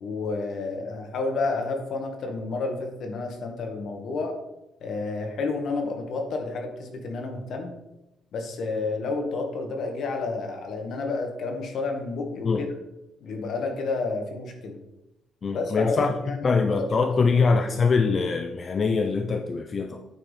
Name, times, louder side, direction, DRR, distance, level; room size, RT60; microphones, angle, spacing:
voice 1, 0.0-4.3 4.8-7.7 8.3-12.7 13.2-14.8 15.5-17.4, left 3 dB, 60° left, 1.7 m, -30 dB
voice 2, 15.4-16.1 16.4-20.1, left 4 dB, 35° left, 0.5 m, -23 dB
8.9 x 4.8 x 5.2 m
cardioid pair, 140°, 0 cm